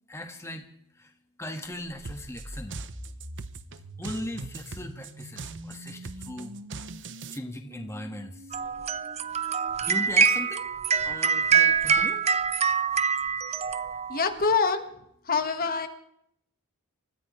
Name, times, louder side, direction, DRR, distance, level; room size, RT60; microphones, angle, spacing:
voice 1, 0.1-0.7 0.9-1.1 1.4-2.9 4.0-6.6 7.0-8.6 9.8-10.7 11.0-12.2, left 1 dB, 10° left, 4 dB, 1.5 m, -39 dB
sound 1, 1.8-11.7, equal, 75° right, 6.4 m, -46 dB
sound 2, 2.0-7.4, right 4 dB, 55° right, 0.8 m, -41 dB
sound 3, 8.5-14.4, right 6 dB, 30° right, 0.5 m, -25 dB
voice 2, 14.1-14.8 15.2-15.9, left 5 dB, 40° left, 6 dB, 1.5 m, -25 dB
28.0 x 14.5 x 3.2 m, 0.74 s
head